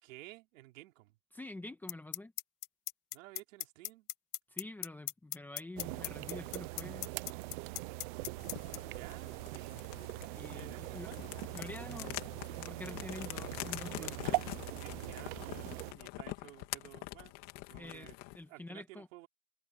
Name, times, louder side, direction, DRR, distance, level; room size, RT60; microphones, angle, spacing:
voice 1, 0.0-1.2 3.1-4.1 8.9-9.8 10.5-11.3 13.1-13.3 14.0-14.3 14.7-17.3 17.7-18.1 18.5-19.3, right 19 dB, 55° right, 4.7 m, -54 dB
voice 2, 1.3-2.3 4.5-7.1 10.3-11.1 11.5-12.2 12.6-14.1 17.8-19.1, left 2 dB, 5° left, 1.5 m, -47 dB
sound 1, 1.9-8.8, left 15 dB, 85° left, 1.2 m, -37 dB
sound 2, 5.8-15.9, right 21 dB, 35° right, 0.7 m, -42 dB
sound 3, 8.4-18.4, left 19 dB, 35° left, 2.4 m, -45 dB
supercardioid pair, 165°, 45 cm